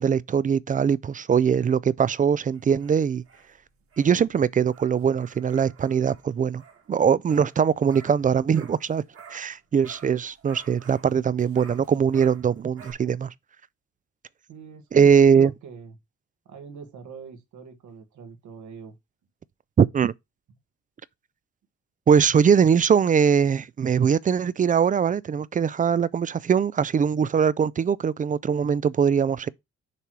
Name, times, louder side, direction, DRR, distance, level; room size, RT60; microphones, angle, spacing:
voice 1, 0.0-3.2 4.0-6.6 6.9-9.0 9.3-13.3 14.9-15.5 19.8-20.1 22.1-29.5, right 7 dB, 30° right, 0.3 m, -21 dB
sound 1, 2.5-9.6 9.8-12.9, right 6 dB, 45° right, 1.7 m, -51 dB
voice 2, 14.5-15.9 16.4-19.0, right 6 dB, 75° right, 1.5 m, -43 dB
6.8 x 3.1 x 6.0 m
cardioid pair, 90°, 30 cm